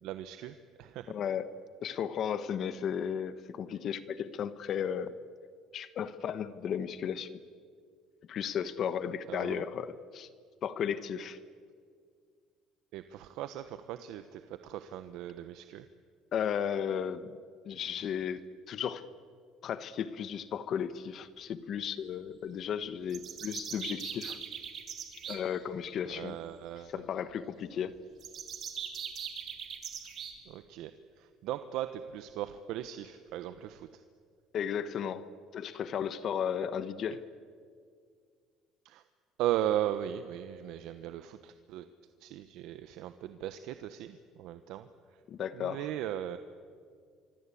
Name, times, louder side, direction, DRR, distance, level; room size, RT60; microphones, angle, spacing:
voice 1, 0.0-1.1 9.3-9.6 12.9-15.8 26.1-26.9 30.5-30.9 31.2-34.0 38.8-39.0 39.4-41.9 42.2-44.9 45.6-46.4, right 12 dB, 75° right, 10 dB, 1.1 m, -37 dB
voice 2, 1.1-1.5 1.8-5.1 5.7-7.4 8.3-10.3 10.6-11.4 16.3-17.4 17.6-19.1 19.6-24.4 25.3-26.4 26.9-27.9 34.5-37.2 45.3-45.9, left 8 dB, 50° left, 13 dB, 1.1 m, -34 dB
sound 1, 23.1-25.4 28.2-30.3, right 8 dB, 50° right, 3.8 m, -40 dB
26.0 x 25.0 x 8.6 m, 2.1 s
cardioid pair, 130°, 0 cm